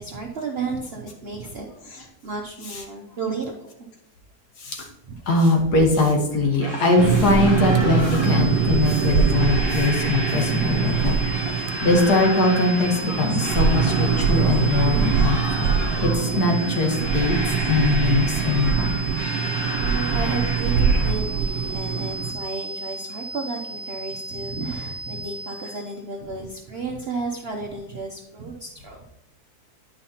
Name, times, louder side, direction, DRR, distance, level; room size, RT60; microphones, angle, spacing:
voice 1, 0.0-3.7 5.1-5.2 19.4-29.0, right 4 dB, 60° right, 1 dB, 0.6 m, -32 dB
voice 2, 5.3-15.8 16.0-17.4 17.7-19.0, left 2 dB, 65° left, 1 dB, 1.8 m, -21 dB
sound 1, 6.6-21.1, equal, 45° left, 2.8 m, -33 dB
sound 2, 7.0-22.3, right 7 dB, 75° right, 1.2 m, -23 dB
sound 3, 8.2-25.9, right 2 dB, 10° right, 1.4 m, -35 dB
9.8 x 5.6 x 2.8 m, 0.85 s
omnidirectional pair, 1.8 m